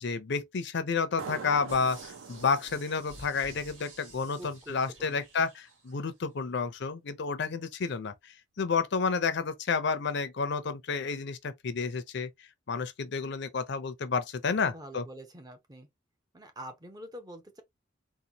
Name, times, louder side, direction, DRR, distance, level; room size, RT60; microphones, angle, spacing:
voice 1, 0.0-2.0 2.3-12.3 12.7-15.0, left 5 dB, 60° left, 0.5 m, -30 dB
sound 1, 1.2-4.5, right 5 dB, 90° right, 0.6 m, -45 dB
sound 2, 1.7-6.1 6.5-6.6, right 2 dB, 65° right, 2.2 m, -52 dB
voice 2, 4.4-5.3 14.6-15.9 16.3-17.6, right 1 dB, 20° right, 0.7 m, -46 dB
3.9 x 2.2 x 2.8 m
head